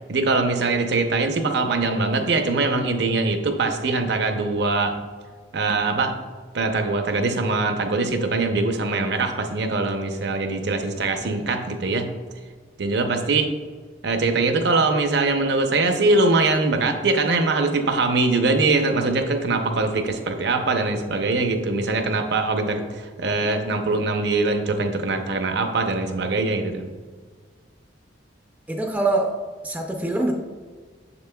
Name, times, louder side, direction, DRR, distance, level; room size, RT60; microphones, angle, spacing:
voice 1, 0.1-4.9 5.5-6.1 6.5-12.1 12.8-13.5 14.0-26.8, right 3 dB, 65° right, 6 dB, 0.7 m, -22 dB
voice 2, 28.7-29.4 29.6-30.3, right 2 dB, 10° right, 1 dB, 0.4 m, -23 dB
6.8 x 6.6 x 2.3 m, 1.5 s
head